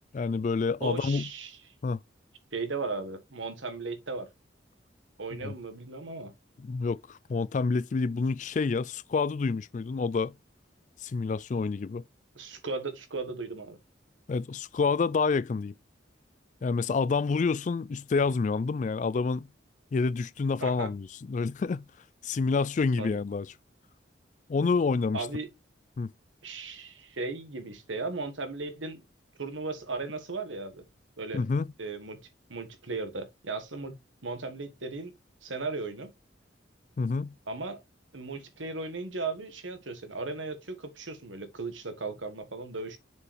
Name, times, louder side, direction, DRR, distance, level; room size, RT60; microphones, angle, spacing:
voice 1, 0.1-1.2 1.8-2.0 5.4-5.5 6.6-10.3 11.0-12.0 14.3-15.7 16.6-19.5 19.9-21.8 22.2-23.5 24.5-25.3 26.0-26.1 31.3-31.7 37.0-37.3, left 4 dB, 40° left, 0.3 m, -28 dB
voice 2, 0.8-1.6 2.5-4.3 5.2-6.3 12.3-13.8 20.6-20.9 23.0-23.2 25.1-25.5 26.4-29.0 29.4-30.8 31.2-31.4 31.8-33.9 34.2-35.1 35.4-36.1 37.5-37.8 38.1-43.0, right 3 dB, 85° right, 1.6 m, -36 dB
6.9 x 4.6 x 3.4 m
head